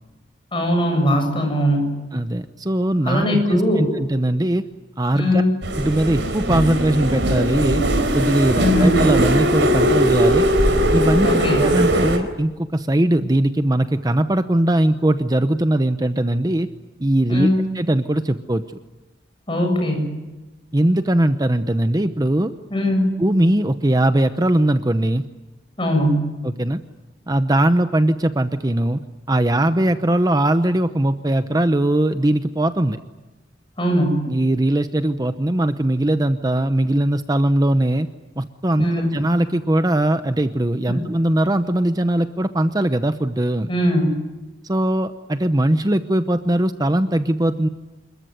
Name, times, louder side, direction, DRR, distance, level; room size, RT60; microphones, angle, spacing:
voice 1, 0.5-2.0 3.0-4.0 5.1-5.5 8.6-9.0 11.2-11.7 17.3-17.6 19.5-20.1 22.7-23.1 25.8-26.3 33.8-34.2 38.8-39.1 40.9-41.1 43.7-44.1, equal, 30° left, 4 dB, 7.3 m, -20 dB
voice 2, 2.1-4.6 5.0-5.4 5.7-7.8 8.1-10.5 10.9-16.7 17.0-17.5 17.7-18.6 20.7-22.5 23.2-25.3 26.4-26.8 27.3-29.0 29.3-33.0 34.3-38.1 38.4-38.8 39.1-43.7 44.6-47.7, right 1 dB, 20° right, 10 dB, 0.8 m, -20 dB
sound 1, 5.6-12.2, right 1 dB, 85° right, 4.3 m, -19 dB
27.5 x 22.0 x 9.5 m, 1.1 s
head